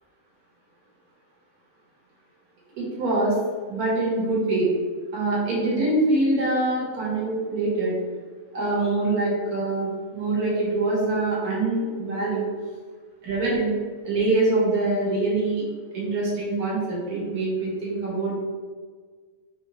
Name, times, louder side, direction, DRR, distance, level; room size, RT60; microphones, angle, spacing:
voice 1, 2.8-3.3 3.7-4.7 5.1-7.9 8.5-12.5 13.2-13.7 14.0-15.6 15.9-18.4, right 2 dB, 85° right, -5 dB, 1.6 m, -24 dB
3.4 x 2.8 x 2.8 m, 1.5 s
omnidirectional pair, 1.5 m